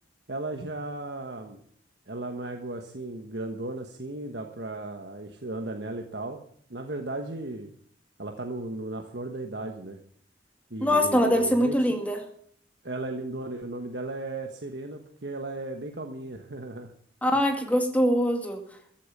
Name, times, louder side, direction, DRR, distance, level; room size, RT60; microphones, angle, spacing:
voice 1, 0.3-1.6 2.1-6.4 6.7-7.7 8.2-10.0 10.7-11.8 12.8-16.9, right 2 dB, 65° right, 4 dB, 1.3 m, -35 dB
voice 2, 10.8-12.2 17.2-18.6, equal, 10° left, 4 dB, 2.2 m, -23 dB
15.0 x 8.8 x 7.3 m, 0.62 s
head